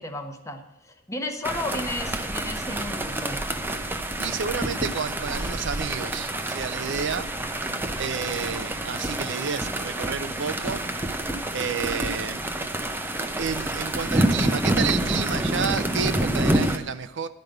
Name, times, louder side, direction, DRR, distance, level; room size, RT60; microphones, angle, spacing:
voice 1, 0.0-3.4, left 1 dB, 15° left, 5 dB, 1.1 m, -33 dB
sound 1, 1.4-16.8, right 1 dB, 10° right, 0.7 m, -28 dB
voice 2, 4.2-7.3 8.0-10.8 11.5-12.4 13.4-17.3, right 6 dB, 60° right, 11 dB, 0.5 m, -30 dB
11.5 x 5.2 x 7.8 m, 0.92 s
head